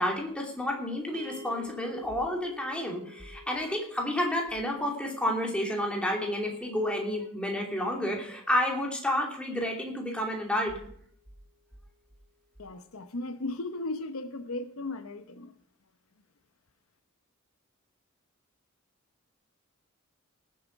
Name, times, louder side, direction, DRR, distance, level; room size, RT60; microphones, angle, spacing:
voice 1, 0.0-10.7, left 1 dB, 5° left, 0 dB, 2.8 m, -30 dB
sound 1, 1.1-11.4, left 1 dB, 40° right, 1.9 m, -53 dB
voice 2, 12.6-15.5, left 2 dB, 80° left, 10 dB, 0.9 m, -36 dB
18.0 x 7.7 x 5.3 m, 0.62 s
head